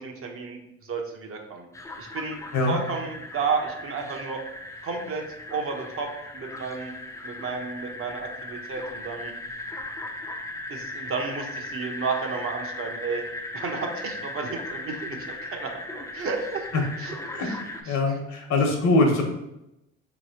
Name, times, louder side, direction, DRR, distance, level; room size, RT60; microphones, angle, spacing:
voice 1, 0.0-1.7 2.0-2.4 2.7-4.4 4.8-5.2 5.5-6.9 7.2-9.3 10.7-13.2 13.5-16.7 17.0-17.1 17.4-17.6 17.8-18.2, right 4 dB, 45° right, 2 dB, 0.8 m, -32 dB
sound 1, 1.7-17.8, left 2 dB, 10° left, 0.5 m, -38 dB
voice 2, 17.8-19.2, left 2 dB, 60° left, 2 dB, 1.1 m, -22 dB
4.0 x 3.0 x 2.8 m, 0.87 s
supercardioid pair, 75°, 31 cm